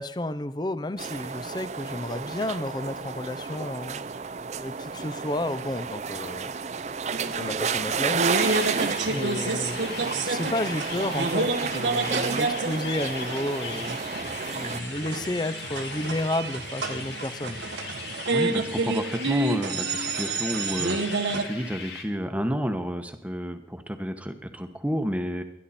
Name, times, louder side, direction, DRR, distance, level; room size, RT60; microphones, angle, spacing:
voice 1, 0.0-4.0 4.6-6.5 7.3-8.2 9.1-14.0 14.5-17.6, left 1 dB, 25° left, 13 dB, 0.6 m, -31 dB
sound 1, 1.0-14.8, right 5 dB, 40° right, 0.5 m, -32 dB
sound 2, 7.1-21.4, right 3 dB, 80° right, 1.4 m, -30 dB
sound 3, 8.4-22.0, left 4 dB, 70° left, 2.2 m, -39 dB
voice 2, 18.3-21.0 21.3-25.4, equal, 10° right, 7 dB, 1.0 m, -30 dB
20.0 x 11.5 x 4.3 m, 0.82 s
head